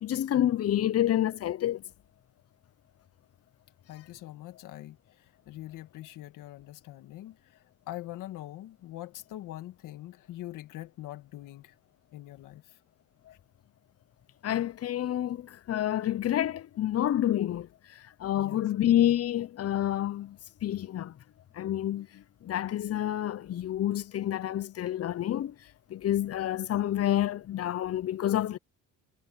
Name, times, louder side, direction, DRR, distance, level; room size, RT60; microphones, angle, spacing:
voice 1, 0.0-1.8 13.3-13.4 14.4-21.2 21.5-28.6, left 12 dB, 50° left, 0.8 m, -29 dB
voice 2, 3.9-11.7 12.1-12.8 13.3-13.4 18.4-18.6, left 15 dB, 75° left, 2.0 m, -43 dB
supercardioid pair, 80°, 32 cm